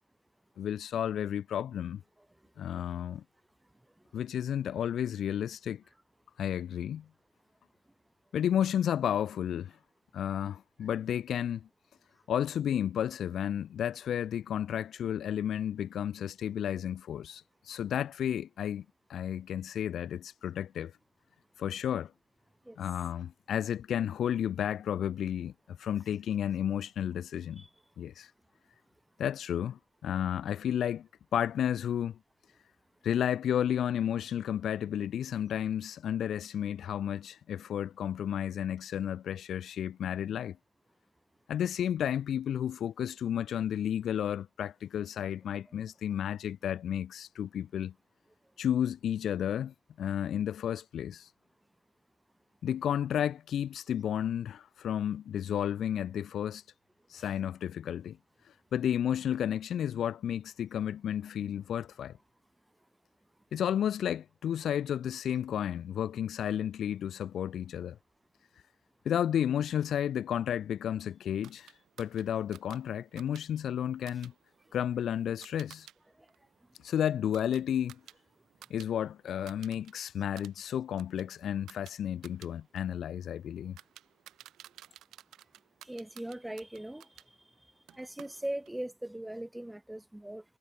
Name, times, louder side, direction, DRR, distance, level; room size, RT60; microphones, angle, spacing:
voice 1, 0.6-2.0 2.6-3.2 4.1-5.8 6.4-7.1 8.3-9.7 10.1-11.7 12.3-18.8 19.1-20.9 21.6-22.1 22.8-27.6 28.0-28.3 29.2-32.2 33.0-40.6 41.5-47.9 48.6-51.3 52.6-56.6 57.1-58.2 58.7-62.2 63.5-68.0 69.0-71.7 72.0-74.3 74.7-75.9 76.8-78.0 78.7-83.8, left 9 dB, 65° left, 1.0 m, -32 dB
sound 1, 71.4-76.0 76.3-78.9 79.2-79.9 80.2-87.3 87.9-88.8, right 12 dB, 80° right, 2.0 m, -55 dB
voice 2, 85.9-87.1 87.9-90.4, right 1 dB, 5° right, 3.9 m, -39 dB
cardioid pair, 90°, 0 cm